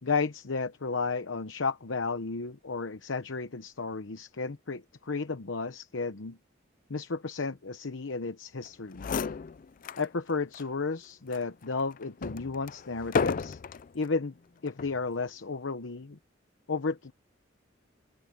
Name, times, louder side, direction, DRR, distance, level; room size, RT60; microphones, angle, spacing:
voice 1, 0.0-6.4 6.9-9.1 10.0-13.6 13.9-14.3 14.6-16.2 16.7-17.1, left 4 dB, 80° left, 0.9 m, -33 dB
sound 1, 8.7-8.8 8.9-10.1 10.5-10.7 11.3-13.9 14.7-15.0, left 5 dB, 45° left, 0.4 m, -33 dB
open air
head